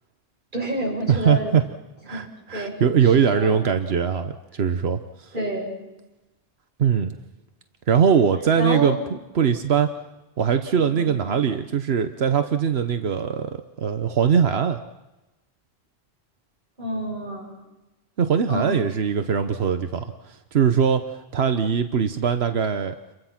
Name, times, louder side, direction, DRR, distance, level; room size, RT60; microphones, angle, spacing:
voice 1, 0.5-1.5 2.1-2.8 3.0-3.7 5.3-5.8 8.6-9.0 10.8-11.3 16.8-17.6 18.5-18.7, right 1 dB, 50° right, -1 dB, 7.8 m, -29 dB
voice 2, 1.1-1.6 2.1-5.3 6.8-7.2 7.9-9.0 9.3-9.9 10.4-14.8 18.2-22.9, right 7 dB, 80° right, 8 dB, 1.2 m, -21 dB
29.0 x 24.0 x 6.0 m, 1.0 s
omnidirectional pair, 1.0 m